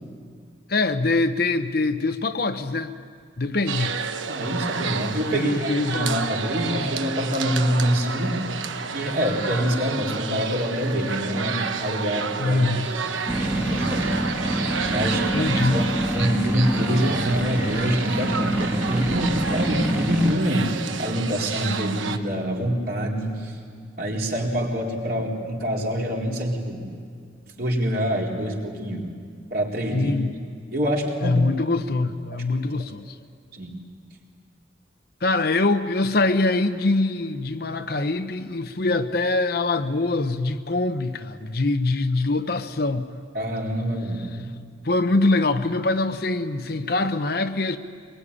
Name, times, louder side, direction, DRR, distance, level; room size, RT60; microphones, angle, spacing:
voice 1, 0.7-2.9 3.4-3.9 5.3-6.3 12.4-12.9 15.3-15.8 29.9-30.3 31.2-33.1 35.2-43.1 44.8-47.8, left 2 dB, 50° left, 9 dB, 0.9 m, -23 dB
sound 1, 3.7-22.2, right 5 dB, 85° right, 1.2 m, -30 dB
voice 2, 4.3-5.7 6.0-8.4 8.9-12.7 13.0-14.1 14.8-15.8 16.1-20.7 21.0-23.5 24.0-26.9 27.6-29.1 29.5-30.1 30.7-31.4 32.3-32.4 33.5-33.7 43.3-44.5, equal, 50° right, -2 dB, 4.1 m, -26 dB
sound 2, 13.3-20.3, right 1 dB, 10° right, 1.8 m, -26 dB
24.5 x 21.5 x 9.8 m, 2.1 s
head